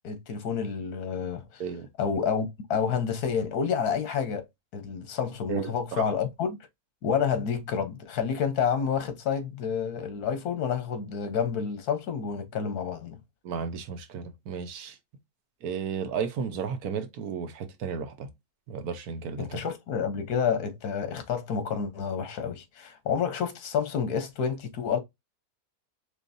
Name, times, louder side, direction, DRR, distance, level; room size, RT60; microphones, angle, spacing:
voice 1, 0.0-1.6 2.0-4.5 4.7-6.6 7.0-13.2 19.4-25.0, left 7 dB, 80° left, 1.5 m, -29 dB
voice 2, 5.5-6.1 13.4-14.9 15.6-18.3 18.7-19.6, right 6 dB, 75° right, 1.3 m, -33 dB
4.5 x 3.3 x 2.6 m
omnidirectional pair, 1.6 m